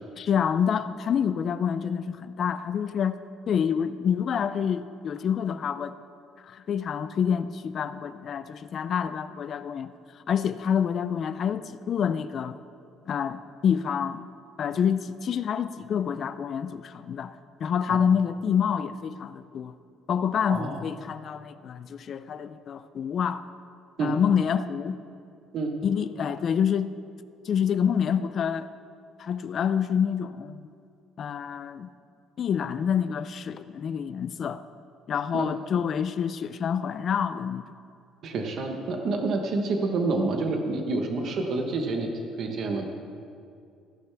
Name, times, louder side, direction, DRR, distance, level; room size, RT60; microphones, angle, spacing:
voice 1, 0.2-3.2 3.5-6.0 6.4-9.9 10.3-12.6 13.1-14.2 14.6-17.4 17.6-19.7 20.1-23.4 24.0-25.0 25.8-26.9 27.4-28.7 29.2-30.7 31.2-31.9 32.4-34.6 35.1-37.6, left 7 dB, 35° left, 13 dB, 0.4 m, -27 dB
voice 2, 20.5-20.8 24.0-24.1 25.5-25.7 35.3-35.5 35.7-35.8 38.2-42.1 42.4-42.9, right 3 dB, 40° right, 3 dB, 1.1 m, -28 dB
15.0 x 11.5 x 3.4 m, 2.4 s
cardioid pair, 170°, 0 cm